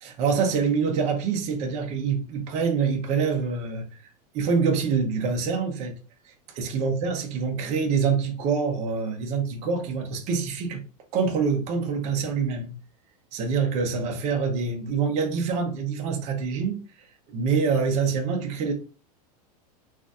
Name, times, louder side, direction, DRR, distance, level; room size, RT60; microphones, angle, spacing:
voice 1, 0.2-4.1 4.3-5.9 6.2-10.8 11.1-12.7 13.3-18.7, right 5 dB, 35° right, 0.7 m, -26 dB
3.8 x 2.5 x 2.3 m
supercardioid pair, 150°, 21 cm